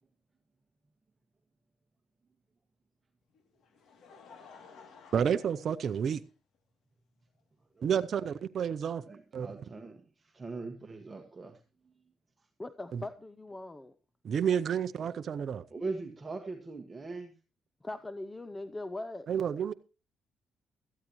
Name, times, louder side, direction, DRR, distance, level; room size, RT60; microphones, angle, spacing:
Laughter, 3.3-6.6 7.4-7.5 8.9-9.0, left 5 dB, 70° left, 2.6 m, -55 dB
voice 1, 5.1-6.2 7.8-9.0 9.3-9.5 12.9-13.0 14.2-15.6 19.3-19.7, right 8 dB, 55° right, 0.6 m, -30 dB
voice 2, 9.0-11.6 12.4-12.5 15.7-17.3, right 3 dB, 25° right, 1.6 m, -41 dB
voice 3, 12.6-13.9 17.8-19.3, left 2 dB, 20° left, 0.7 m, -40 dB
17.0 x 13.5 x 3.0 m
cardioid pair, 90°, 0 cm